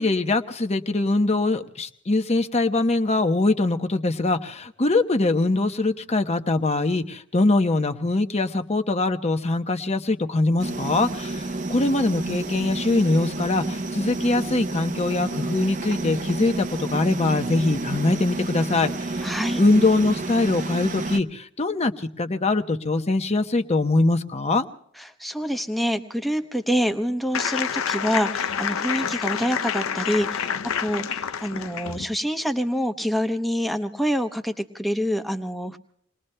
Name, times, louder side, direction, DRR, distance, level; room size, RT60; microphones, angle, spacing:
voice 1, 0.0-19.1 19.6-24.7, left 2 dB, 30° left, 7 dB, 0.8 m, -22 dB
sound 1, 10.6-21.2, right 2 dB, 40° right, 0.7 m, -30 dB
voice 2, 19.2-19.6 25.0-35.8, equal, ahead, 6 dB, 0.8 m, -26 dB
sound 2, 27.3-32.0, left 7 dB, 85° left, 0.6 m, -28 dB
29.0 x 20.0 x 2.2 m, 0.70 s
head